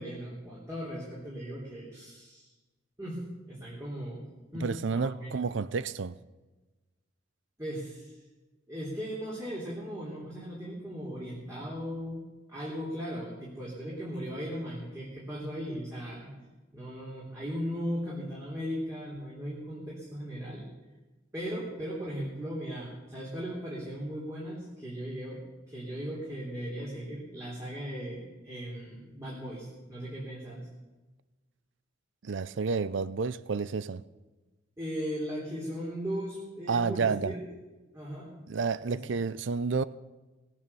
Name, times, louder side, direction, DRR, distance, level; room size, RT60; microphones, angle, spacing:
voice 1, 0.0-2.5 3.0-4.2 4.5-5.3 7.6-8.2 8.7-12.2 12.5-16.3 16.7-20.6 21.3-25.4 25.7-30.7 34.8-37.4 37.9-38.3 38.9-39.0, equal, 15° right, 3.6 m, -37 dB
voice 2, 4.6-6.1 32.2-34.0 36.7-37.3 38.5-39.8, right 5 dB, 70° right, 0.5 m, -30 dB
19.0 x 8.5 x 7.0 m
head